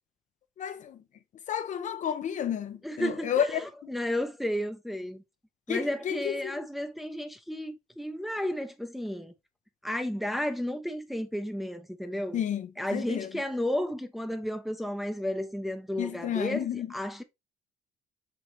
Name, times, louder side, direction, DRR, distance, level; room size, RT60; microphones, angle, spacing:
voice 1, 0.6-1.0 1.5-3.9 5.7-6.5 12.3-13.3 16.0-16.9, left 9 dB, 45° left, 0.5 m, -31 dB
voice 2, 2.8-5.2 5.7-9.3 9.8-12.4 12.8-17.2, left 1 dB, ahead, 0.6 m, -33 dB
4.5 x 3.7 x 3.1 m
cardioid pair, 110°, 17 cm